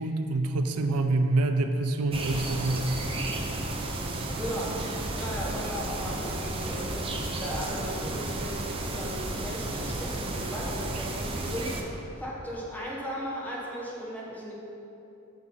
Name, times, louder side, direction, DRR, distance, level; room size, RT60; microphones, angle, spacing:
voice 1, 0.0-3.0, right 2 dB, 85° right, 7 dB, 0.5 m, -26 dB
sound 1, 2.1-11.8, right 2 dB, 25° right, 0.7 m, -33 dB
voice 2, 4.3-4.9 5.1-11.8 12.2-14.6, equal, 5° left, -5 dB, 1.3 m, -36 dB
9.5 x 6.2 x 4.0 m, 2.9 s
head